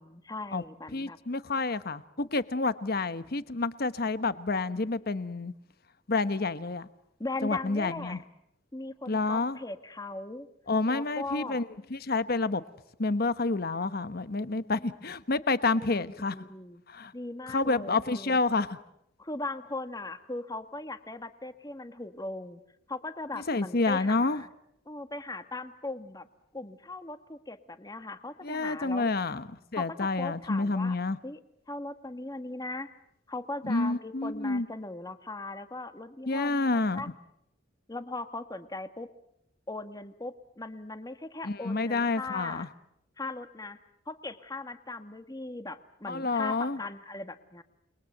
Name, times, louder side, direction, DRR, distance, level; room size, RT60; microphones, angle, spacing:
voice 1, 0.0-1.2 7.2-8.2 8.7-10.5 10.9-11.6 14.4-15.0 15.7-16.8 17.1-18.4 19.2-22.6 22.9-24.5 24.8-26.3 26.5-29.1 29.7-31.0 31.2-31.4 31.7-32.9 33.3-36.7 36.9-37.1 37.9-39.1 39.7-42.7 43.2-43.8 44.1-47.6, left 2 dB, 20° left, 9 dB, 1.5 m, -39 dB
voice 2, 0.9-5.5 6.1-6.9 7.4-8.2 9.1-9.6 10.7-12.6 13.0-16.3 16.9-17.1 17.5-18.8 23.3-24.4 28.4-31.2 33.6-34.7 36.3-37.0 41.4-42.7 46.1-46.8, left 3 dB, 55° left, 13 dB, 1.1 m, -29 dB
29.5 x 22.0 x 7.9 m, 0.79 s
head